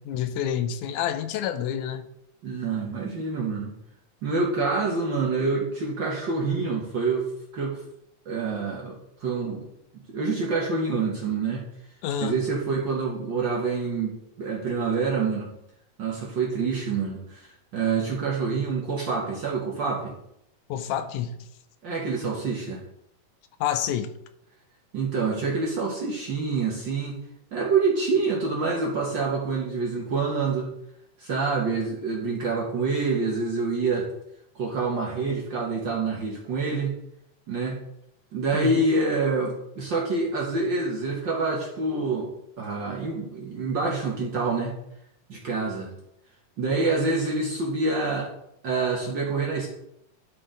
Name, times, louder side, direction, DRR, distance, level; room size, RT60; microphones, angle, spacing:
voice 1, 0.1-2.1 12.0-12.4 20.7-21.5 23.6-24.1 38.5-38.9, left 9 dB, 90° left, 10 dB, 2.1 m, -28 dB
voice 2, 2.4-3.7 4.2-7.3 7.5-7.8 8.2-9.7 10.1-11.6 12.2-15.5 16.0-20.1 21.8-22.8 24.9-27.2 27.5-30.7 31.2-34.1 34.5-36.9 37.5-37.8 38.3-42.3 42.6-44.7 45.3-45.9 46.6-48.3 48.6-49.7, right 4 dB, 55° right, -2 dB, 1.4 m, -27 dB
12.0 x 4.5 x 3.8 m, 0.78 s
omnidirectional pair, 3.4 m